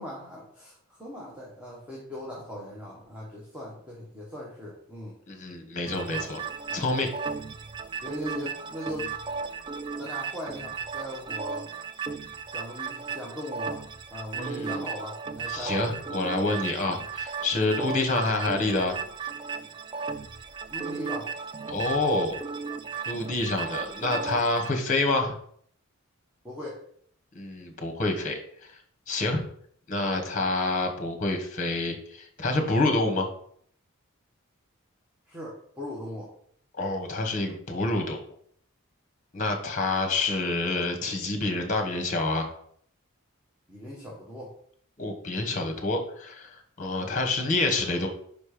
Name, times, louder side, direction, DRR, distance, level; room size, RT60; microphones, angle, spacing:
voice 1, 0.0-5.1 5.9-6.3 6.7-6.8 8.0-9.1 10.0-11.7 12.5-13.8 14.1-15.9 20.7-21.3 26.4-26.8 35.3-36.3 43.7-44.5 47.0-47.2, left 1 dB, 5° right, -5 dB, 1.2 m, -39 dB
voice 2, 5.3-6.4 6.7-7.1 14.3-14.8 15.5-18.9 21.7-22.4 23.1-25.3 27.3-28.7 29.1-29.4 29.9-33.3 36.7-38.2 39.3-42.5 45.0-48.1, left 2 dB, 35° left, 3 dB, 1.2 m, -27 dB
sound 1, 5.9-24.7, right 5 dB, 20° right, 0.3 m, -35 dB
5.3 x 4.3 x 5.0 m, 0.63 s
head